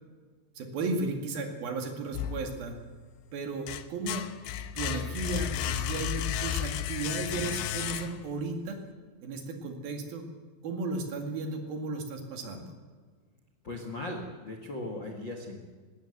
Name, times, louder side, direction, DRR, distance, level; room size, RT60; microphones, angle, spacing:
voice 1, 0.6-2.7 3.3-4.3 4.8-8.8 9.2-10.3 10.6-12.6, right 3 dB, 60° right, 4 dB, 3.8 m, -34 dB
sound 1, 2.1-3.0 3.4-8.4, left 10 dB, 80° left, 3.1 m, -33 dB
voice 2, 13.6-15.6, left 2 dB, 40° left, 3 dB, 1.7 m, -38 dB
20.0 x 17.5 x 8.1 m, 1.5 s
omnidirectional pair, 5.1 m